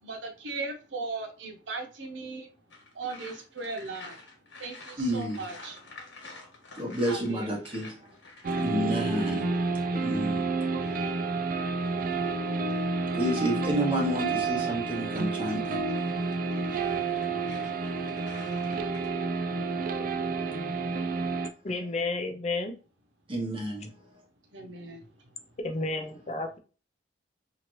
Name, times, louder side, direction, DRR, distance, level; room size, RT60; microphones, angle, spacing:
voice 1, 0.0-2.5 2.9-4.2 4.6-5.8 7.1-7.5 24.5-25.1, right 3 dB, 90° right, 0.8 m, -38 dB
sound 1, 2.7-12.6 14.7-19.1, left 3 dB, 80° left, 1.3 m, -50 dB
voice 2, 5.0-5.4 6.8-7.9 8.6-9.5 10.0-10.4 10.9-11.1 13.1-15.8 20.5-20.7 23.3-23.9, equal, 30° right, 1.0 m, -30 dB
sound 2, 8.4-21.5, right 3 dB, 50° right, 0.3 m, -30 dB
voice 3, 21.6-22.7 25.6-26.6, left 3 dB, 40° left, 0.5 m, -31 dB
2.9 x 2.5 x 3.1 m
head